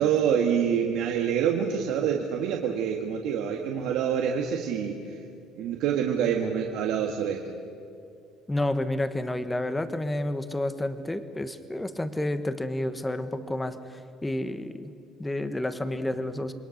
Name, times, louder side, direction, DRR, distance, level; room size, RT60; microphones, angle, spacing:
voice 1, 0.0-5.2 5.6-7.4, right 8 dB, 75° right, 1 dB, 1.8 m, -26 dB
voice 2, 8.5-14.9 15.2-16.5, left 1 dB, 10° left, 10 dB, 1.2 m, -30 dB
27.5 x 22.5 x 6.6 m, 2.5 s
cardioid pair, 140°, 0 cm